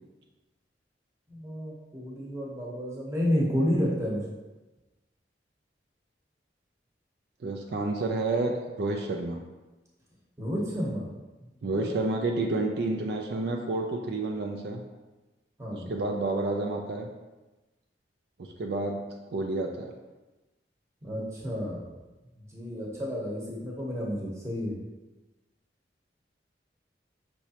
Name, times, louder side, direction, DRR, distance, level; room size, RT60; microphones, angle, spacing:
voice 1, 1.3-4.3 10.4-11.1 11.7-11.9 15.6-15.9 21.0-21.9 22.5-24.8, equal, 15° right, -5 dB, 0.9 m, -30 dB
voice 2, 7.4-9.4 11.6-14.8 15.7-17.1 18.4-19.9, right 2 dB, 65° right, 2 dB, 0.4 m, -30 dB
5.7 x 3.1 x 2.8 m, 1.1 s
head